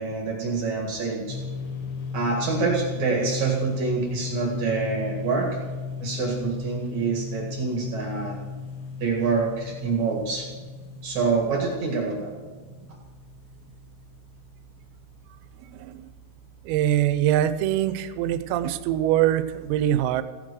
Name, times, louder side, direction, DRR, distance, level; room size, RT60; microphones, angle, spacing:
voice 1, 0.0-1.4 2.1-5.5 6.0-8.4 9.0-10.5 11.0-12.3, right 4 dB, 50° right, -1 dB, 2.4 m, -26 dB
sound 1, 1.3-14.8, left 5 dB, 80° left, 4.1 m, -36 dB
voice 2, 16.7-20.2, right 12 dB, 85° right, 12 dB, 3.3 m, -23 dB
16.0 x 8.8 x 6.2 m, 1.4 s
omnidirectional pair, 5.9 m